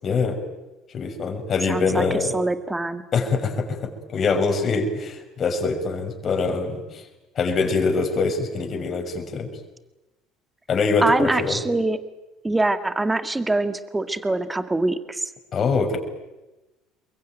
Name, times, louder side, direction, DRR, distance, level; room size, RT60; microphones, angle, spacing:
voice 1, 0.0-0.4 0.9-2.3 3.1-7.0 7.4-9.5 10.7-11.6 15.5-16.0, left 4 dB, 40° left, 4 dB, 6.4 m, -24 dB
voice 2, 1.7-3.0 11.0-12.0 12.4-15.2, right 2 dB, 15° right, 10 dB, 2.0 m, -24 dB
28.5 x 22.5 x 9.2 m, 1.0 s
hypercardioid pair, 65°, 0 cm